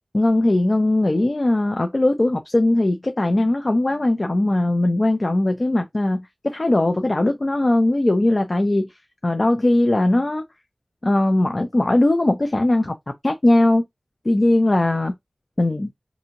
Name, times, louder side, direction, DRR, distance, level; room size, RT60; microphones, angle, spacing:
voice 1, 0.1-8.9 9.2-10.4 11.0-12.9 13.2-13.8 14.2-15.1 15.6-15.9, left 1 dB, 50° left, 0.4 m, -19 dB
2.6 x 2.5 x 2.8 m
wide cardioid pair, 65°, 0 cm